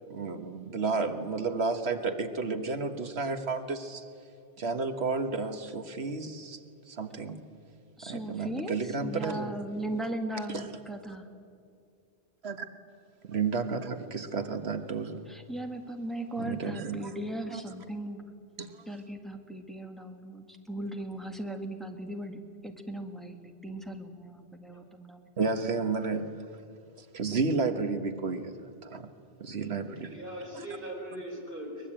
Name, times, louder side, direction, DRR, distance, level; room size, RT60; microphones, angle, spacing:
voice 1, 0.1-4.1 4.6-6.6 6.9-7.4 8.0-9.5 10.5-10.7 12.4-12.7 13.2-15.3 16.4-17.1 17.5-17.6 18.6-18.7 25.4-26.3 27.1-29.1 29.4-30.1 30.5-30.7, right 4 dB, 75° right, 8 dB, 1.6 m, -32 dB
voice 2, 8.0-11.3 15.3-18.2 18.9-25.3, right 1 dB, ahead, 4 dB, 1.8 m, -38 dB
voice 3, 30.1-31.9, right 1 dB, 55° right, -1 dB, 5.5 m, -40 dB
23.0 x 20.5 x 8.9 m, 2.4 s
omnidirectional pair, 1.1 m